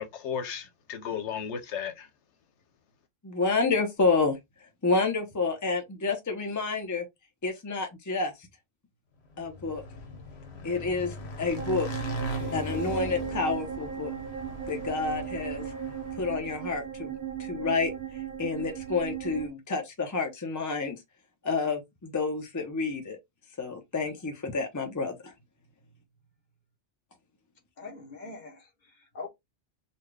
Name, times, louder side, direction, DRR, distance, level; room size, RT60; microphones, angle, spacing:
voice 1, 0.0-2.1, left 7 dB, 85° left, 1.0 m, -34 dB
voice 2, 3.2-4.4 4.8-7.1 7.4-8.3 9.4-9.8 10.6-11.9 12.5-14.1 14.7-15.6 16.2-17.1 17.4-21.0 21.4-23.2 23.6-25.3, left 4 dB, 20° left, 0.7 m, -29 dB
Motorcycle / Engine, 9.3-16.7, left 1 dB, 65° left, 1.2 m, -39 dB
sound 1, 11.6-19.5, right 8 dB, 70° right, 0.8 m, -37 dB
voice 3, 27.8-29.3, left 3 dB, 45° left, 1.2 m, -43 dB
4.2 x 2.3 x 3.3 m
omnidirectional pair, 1.2 m